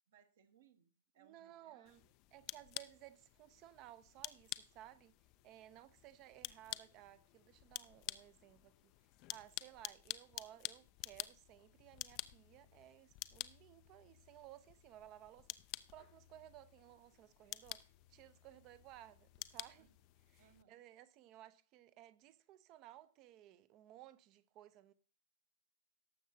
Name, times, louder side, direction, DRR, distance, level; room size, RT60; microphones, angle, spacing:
voice 1, 0.1-1.9 19.8-19.9 20.4-20.8, right 8 dB, 50° right, 1.2 m, -69 dB
voice 2, 1.2-2.0 2.3-5.2 5.4-8.9 9.3-19.9 20.3-24.9, right 13 dB, 30° right, 0.7 m, -58 dB
sound 1, 1.9-20.6, left 19 dB, 35° left, 0.5 m, -50 dB
18.0 x 7.3 x 2.7 m
figure-of-eight pair, 110°, 0 cm